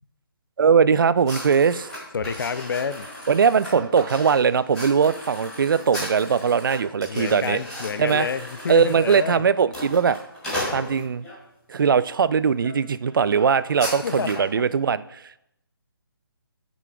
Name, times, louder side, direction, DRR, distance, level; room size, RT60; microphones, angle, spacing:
voice 1, 0.6-1.9 3.3-7.6 8.0-8.3 8.7-10.2 10.7-11.3 11.7-15.4, right 6 dB, 60° right, 17 dB, 0.4 m, -20 dB
sound 1, 1.2-11.4 12.0-12.2 12.6-12.7 13.0-14.5, left 1 dB, 5° left, 2.4 m, -36 dB
voice 2, 2.1-3.1 7.1-9.5 14.0-14.5, left 6 dB, 60° left, 13 dB, 0.5 m, -29 dB
10.5 x 6.1 x 2.3 m, 0.80 s
hypercardioid pair, 170°, 13 cm